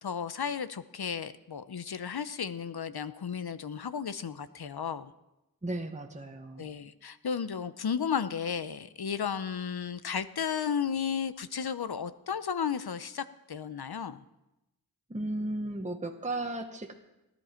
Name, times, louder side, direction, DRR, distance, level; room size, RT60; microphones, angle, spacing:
voice 1, 0.0-5.1 6.6-14.2, left 7 dB, 70° left, 13 dB, 0.7 m, -34 dB
voice 2, 5.6-6.7 15.1-16.9, right 2 dB, 20° right, 3 dB, 1.1 m, -35 dB
17.5 x 11.5 x 4.4 m, 0.94 s
wide cardioid pair, 50°, 39 cm